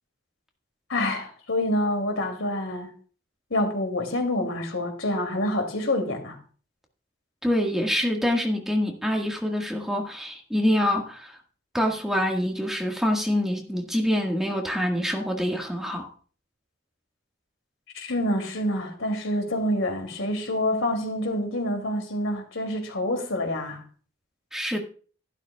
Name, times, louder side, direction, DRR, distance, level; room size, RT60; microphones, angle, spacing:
voice 1, 0.9-2.9 3.5-6.4 17.9-23.8, left 1 dB, 90° left, 2.7 m, -27 dB
voice 2, 7.4-11.4 11.7-16.1 24.5-24.8, equal, ahead, 1.7 m, -25 dB
12.5 x 11.5 x 2.4 m
head